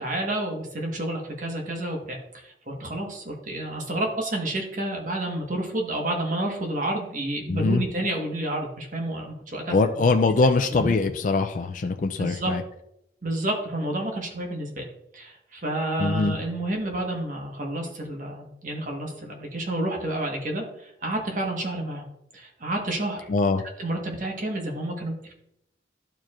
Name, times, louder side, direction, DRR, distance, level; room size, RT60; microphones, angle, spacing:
voice 1, 0.0-10.1 10.7-10.9 12.2-12.5 13.2-14.8 15.1-22.0 22.3-23.2 23.8-25.3, right 1 dB, 45° right, 1 dB, 1.3 m, -30 dB
voice 2, 7.5-7.8 9.7-12.6 16.0-16.4 23.3-23.6, left 3 dB, 45° left, 6 dB, 0.3 m, -22 dB
12.0 x 4.5 x 2.5 m, 0.80 s
head